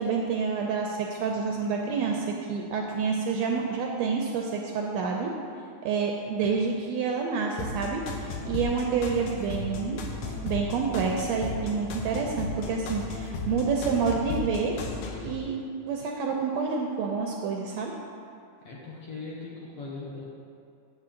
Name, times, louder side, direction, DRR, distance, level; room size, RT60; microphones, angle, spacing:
voice 1, 0.0-5.3 5.8-10.0 10.4-14.8 15.2-15.5 15.8-17.9, right 5 dB, 80° right, 0 dB, 1.6 m, -28 dB
sound 1, 7.6-15.3, left 3 dB, 90° left, 2.3 m, -35 dB
voice 2, 18.6-20.2, left 3 dB, 65° left, -5 dB, 1.6 m, -39 dB
8.4 x 7.6 x 3.8 m, 2.4 s
omnidirectional pair, 3.5 m